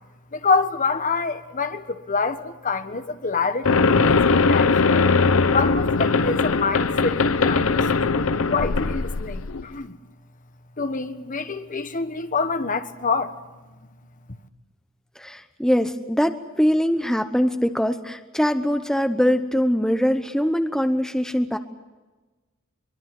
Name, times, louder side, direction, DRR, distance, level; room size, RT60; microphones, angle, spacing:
voice 1, 0.3-5.1 5.5-10.0 10.8-13.4 13.6-13.8, left 4 dB, 40° left, 1.4 m, -26 dB
sound 1, 3.7-9.7, left 4 dB, 75° left, 0.8 m, -20 dB
voice 2, 15.2-21.6, equal, 5° left, 1.0 m, -22 dB
23.5 x 23.5 x 7.8 m
head